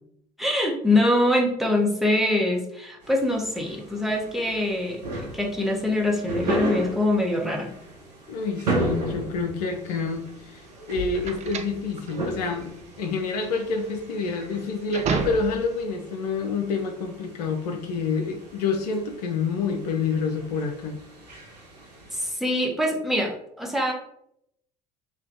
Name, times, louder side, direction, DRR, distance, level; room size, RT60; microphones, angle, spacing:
voice 1, 0.4-5.0 5.3-7.7 22.1-23.9, left 1 dB, ahead, 0 dB, 0.9 m, -24 dB
sound 1, 3.0-22.3, right 1 dB, 90° right, 0.9 m, -35 dB
voice 2, 8.3-10.6 10.9-21.0, left 4 dB, 75° left, 5 dB, 0.5 m, -28 dB
sound 2, 9.9-15.8, right 5 dB, 35° right, 0.5 m, -33 dB
3.4 x 2.2 x 3.7 m, 0.76 s
hypercardioid pair, 65°, 20 cm